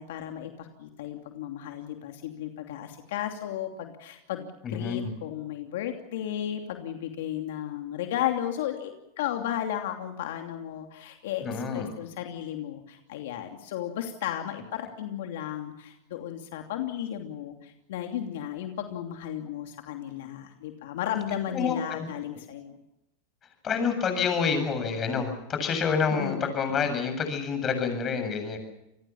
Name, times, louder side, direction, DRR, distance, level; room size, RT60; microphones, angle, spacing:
voice 1, 0.0-22.8 26.1-26.4, left 11 dB, 75° left, 4 dB, 2.8 m, -34 dB
voice 2, 4.6-5.1 11.4-11.9 21.5-22.1 23.6-28.6, left 6 dB, 30° left, 7 dB, 7.5 m, -28 dB
28.5 x 20.5 x 7.2 m, 0.87 s
supercardioid pair, 130°, 0 cm